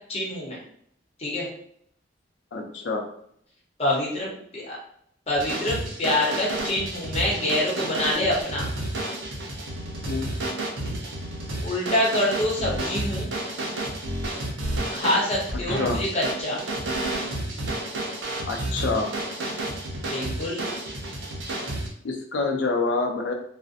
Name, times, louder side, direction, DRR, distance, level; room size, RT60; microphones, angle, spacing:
voice 1, 0.1-0.6 1.2-1.5 3.8-4.8 5.3-8.7 11.6-13.3 14.9-16.6 20.0-20.7, left 1 dB, 30° left, -4 dB, 0.8 m, -26 dB
voice 2, 2.5-3.0 10.1-10.3 15.8-16.0 18.5-19.1 22.0-23.3, left 3 dB, 75° left, 2 dB, 0.5 m, -26 dB
sound 1, 5.3-21.9, right 1 dB, 85° right, 0.6 m, -31 dB
2.6 x 2.0 x 2.4 m, 0.67 s
head